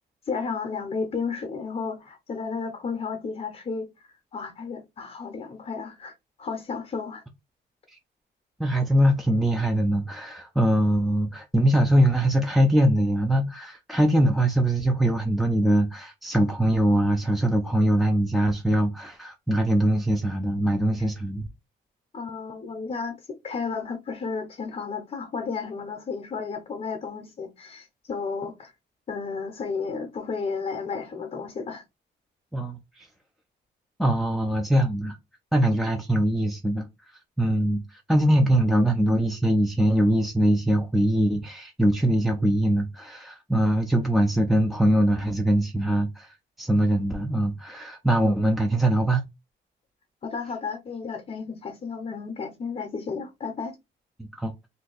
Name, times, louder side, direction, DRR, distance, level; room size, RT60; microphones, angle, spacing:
voice 1, 0.2-7.2 21.0-21.1 22.1-28.7 29.1-31.8 50.2-53.8, left 5 dB, 35° left, 0.7 m, -33 dB
voice 2, 8.6-21.4 32.5-33.1 34.0-35.2 35.5-36.9 37.4-49.2 54.2-54.5, right 1 dB, ahead, 0.4 m, -22 dB
2.6 x 2.2 x 3.8 m
cardioid pair, 90°, 20 cm